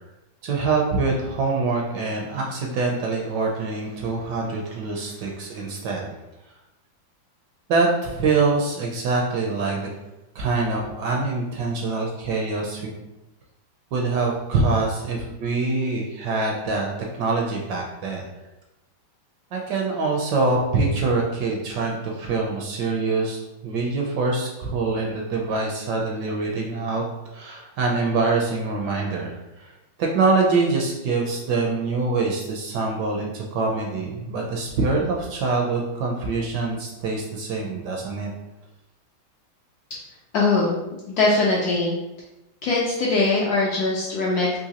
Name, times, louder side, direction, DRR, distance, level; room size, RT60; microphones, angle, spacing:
voice 1, 0.4-6.1 7.7-9.9 10.3-12.9 13.9-16.9 17.1-18.2 19.5-27.0 27.3-29.7 30.0-38.3, right 3 dB, 75° right, 0 dB, 1.0 m, -24 dB
voice 2, 40.3-40.8 41.1-41.9 42.6-44.6, left 3 dB, 75° left, -4 dB, 0.9 m, -21 dB
3.8 x 2.6 x 2.8 m, 0.97 s
omnidirectional pair, 2.2 m